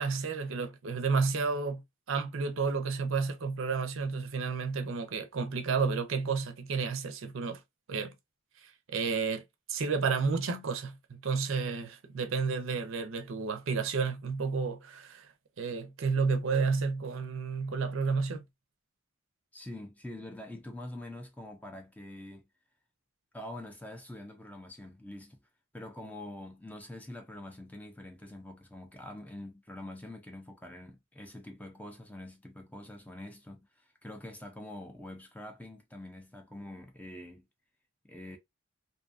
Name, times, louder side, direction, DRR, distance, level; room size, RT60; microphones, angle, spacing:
voice 1, 0.0-1.8 2.1-7.6 7.9-8.1 8.9-9.4 9.7-15.3 15.6-18.4, right 4 dB, 65° right, 0.5 m, -31 dB
voice 2, 19.5-22.5 23.3-25.4 25.7-37.5 38.0-38.4, left 1 dB, 5° left, 0.4 m, -45 dB
2.6 x 2.3 x 2.4 m
head